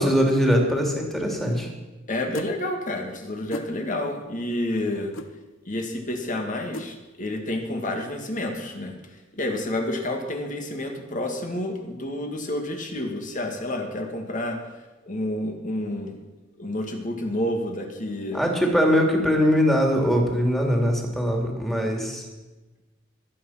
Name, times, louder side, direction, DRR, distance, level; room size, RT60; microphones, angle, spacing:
voice 1, 0.0-1.7 18.3-22.2, equal, ahead, 1 dB, 2.8 m, -21 dB
voice 2, 2.1-5.1 5.7-14.6 15.0-16.2 16.6-18.4, left 1 dB, 40° left, 3 dB, 2.2 m, -29 dB
sound 1, 2.3-2.5 3.5-3.7 5.1-5.3 6.7-6.9, left 1 dB, 80° left, 1.1 m, -34 dB
23.0 x 8.8 x 5.8 m, 1.1 s
head